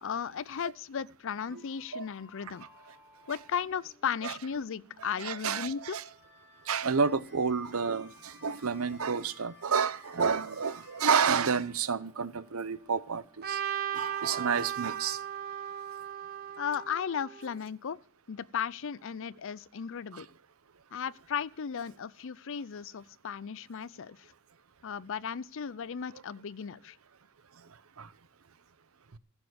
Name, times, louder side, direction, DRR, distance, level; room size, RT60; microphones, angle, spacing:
voice 1, 0.0-2.7 3.3-6.0 16.6-18.0 18.3-20.3 20.9-24.3 24.8-27.0, left 7 dB, 65° left, 0.5 m, -35 dB
sound 1, 1.4-13.4, left 3 dB, 10° right, 4.0 m, -59 dB
voice 2, 5.2-6.1 6.7-13.6 13.9-15.2 20.1-20.2 28.0-28.1, right 6 dB, 80° right, 0.8 m, -30 dB
Trumpet, 13.4-17.6, right 10 dB, 50° right, 1.6 m, -36 dB
15.0 x 7.1 x 7.9 m
head